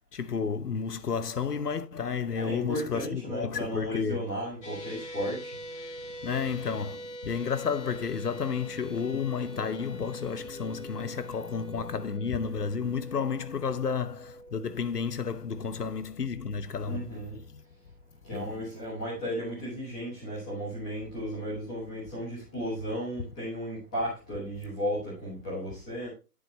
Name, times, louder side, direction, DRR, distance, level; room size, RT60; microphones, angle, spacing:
voice 1, 0.1-4.3 6.2-17.6 18.3-18.6, left 6 dB, 70° left, 1.0 m, -32 dB
voice 2, 2.3-5.5 16.8-17.4 18.2-26.1, equal, 5° left, 1.2 m, -34 dB
sound 1, 4.6-17.0, right 1 dB, 45° left, 2.0 m, -44 dB
9.9 x 5.3 x 3.2 m
hypercardioid pair, 170°, 48 cm